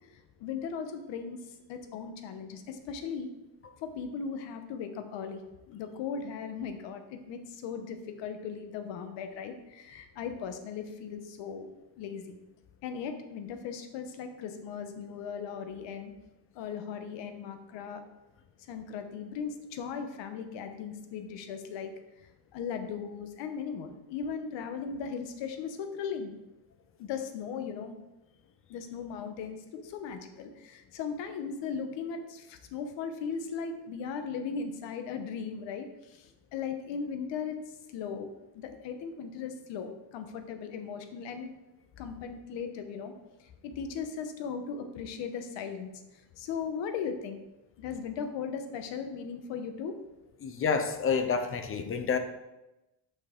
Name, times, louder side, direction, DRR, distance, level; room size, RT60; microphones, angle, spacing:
voice 1, 0.4-1.4 1.7-3.3 3.8-5.4 5.7-11.7 12.0-12.4 12.8-16.1 16.5-18.0 18.7-21.9 22.5-26.3 27.0-27.9 28.7-29.6 29.8-37.5 37.9-41.5 42.0-43.1 43.6-45.9 46.4-47.4 47.8-50.0, left 6 dB, 70° left, 7 dB, 1.0 m, -37 dB
voice 2, 50.4-52.2, left 5 dB, 30° left, 8 dB, 0.4 m, -28 dB
6.4 x 5.4 x 3.6 m, 0.97 s
cardioid pair, 155°, 45 cm